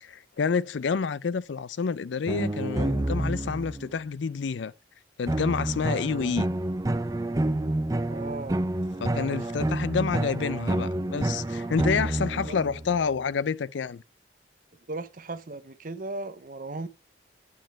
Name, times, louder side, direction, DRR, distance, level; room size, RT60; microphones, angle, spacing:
voice 1, 0.0-4.7 5.2-6.5 9.0-14.0, left 5 dB, 75° left, 0.4 m, -28 dB
sound 1, 2.3-3.9 5.3-13.0, right 1 dB, 20° right, 0.4 m, -29 dB
voice 2, 8.1-8.6 9.2-9.4 12.5-12.6 14.9-16.9, right 2 dB, 45° right, 0.8 m, -36 dB
9.4 x 5.1 x 5.6 m
head